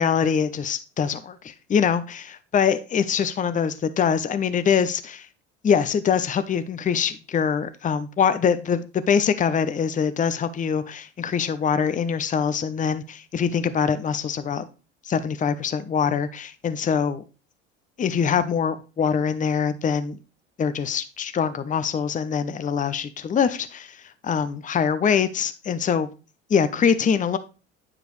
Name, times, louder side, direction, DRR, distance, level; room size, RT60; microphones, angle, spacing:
voice 1, 0.0-5.3 5.6-14.6 15.0-17.2 18.0-20.2 20.6-26.1 26.5-27.4, left 7 dB, 25° left, 12 dB, 0.7 m, -24 dB
9.6 x 4.9 x 3.1 m, 0.33 s
hypercardioid pair, 80°, 34 cm